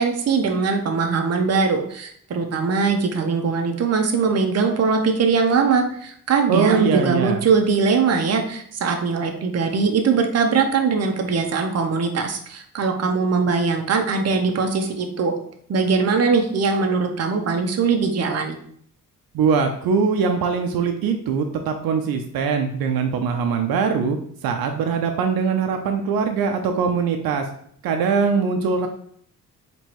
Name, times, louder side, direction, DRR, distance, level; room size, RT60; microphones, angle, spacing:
voice 1, 0.0-15.3 15.7-18.6, right 5 dB, 45° right, 3 dB, 0.7 m, -21 dB
voice 2, 6.5-7.5 19.3-24.2 24.4-27.5 27.8-28.9, right 5 dB, 85° right, 5 dB, 0.5 m, -22 dB
4.4 x 3.0 x 2.9 m, 0.63 s
cardioid pair, 85°, 35 cm